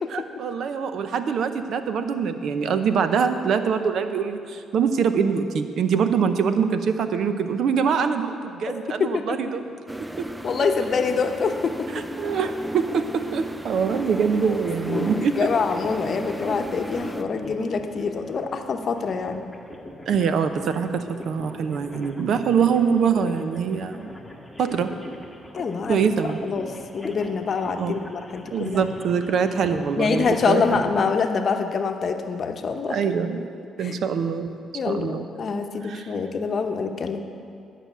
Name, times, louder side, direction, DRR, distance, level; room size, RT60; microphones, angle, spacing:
voice 1, 0.1-9.6 10.2-10.3 11.9-15.5 20.1-24.1 24.6-24.9 25.9-26.4 27.8-28.0 28.5-30.8 32.9-33.4 33.8-34.5 34.9-35.3 35.8-36.1, right 6 dB, 65° right, 9 dB, 0.7 m, -24 dB
voice 2, 9.0-9.4 10.4-12.0 14.4-14.6 14.9-19.4 25.5-26.0 26.4-26.7 26.9-28.8 30.0-33.0 33.8-34.0 34.7-37.2, left 5 dB, 50° left, 6 dB, 0.8 m, -25 dB
sound 1, 9.9-17.2, right 1 dB, 5° right, 0.4 m, -35 dB
sound 2, 14.8-30.9, left 1 dB, 10° left, 1.3 m, -40 dB
11.0 x 5.8 x 8.3 m, 2.4 s
cardioid pair, 90°, 0 cm